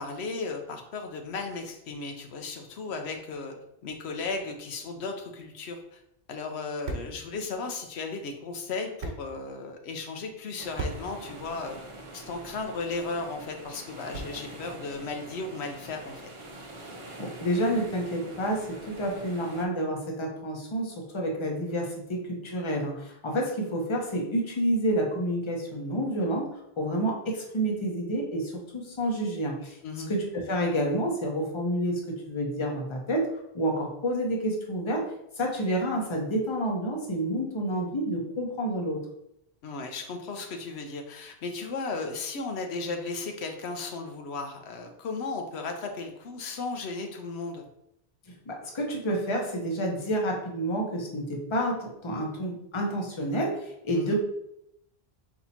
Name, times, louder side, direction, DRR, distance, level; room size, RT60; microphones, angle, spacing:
voice 1, 0.0-3.5 3.8-6.0 6.3-11.8 12.1-16.2 29.8-30.1 39.6-47.7 53.9-54.1, left 3 dB, 85° left, 4 dB, 0.9 m, -35 dB
sound 1, 5.6-14.7, right 2 dB, 80° right, 1.1 m, -43 dB
sound 2, 10.6-19.6, right 1 dB, 35° right, 0.6 m, -44 dB
voice 2, 17.2-26.4 26.8-29.8 30.1-33.3 33.5-35.0 35.4-39.0 48.3-54.1, right 1 dB, 30° left, 0 dB, 0.8 m, -29 dB
4.2 x 2.8 x 4.2 m, 0.79 s
omnidirectional pair, 1.1 m